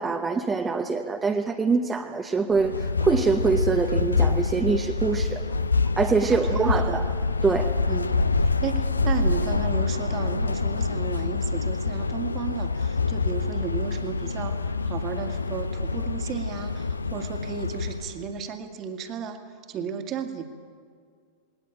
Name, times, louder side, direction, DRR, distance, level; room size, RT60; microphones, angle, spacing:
voice 1, 0.0-5.4 6.0-7.1 7.4-7.7, right 4 dB, 15° right, 3 dB, 1.0 m, -24 dB
sound 1, 2.5-18.3, left 4 dB, 80° left, 0.6 m, -26 dB
voice 2, 6.2-7.0 7.9-8.1 8.4-19.4 19.7-20.5, right 7 dB, 35° right, 6 dB, 1.9 m, -34 dB
20.5 x 18.5 x 8.8 m, 2.1 s
figure-of-eight pair, 90°, 0 cm